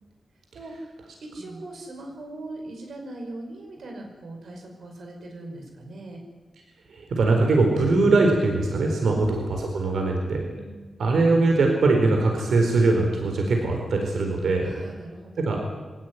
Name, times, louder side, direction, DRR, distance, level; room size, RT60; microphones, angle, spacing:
voice 1, 0.5-6.2 9.0-9.3 10.5-10.9 14.6-15.6, right 2 dB, 70° right, 3 dB, 5.4 m, -40 dB
voice 2, 6.9-10.4 11.0-14.7 15.4-15.6, right 3 dB, 90° right, 2 dB, 4.3 m, -21 dB
23.0 x 18.5 x 9.7 m, 1.3 s
wide cardioid pair, 180°, 0 cm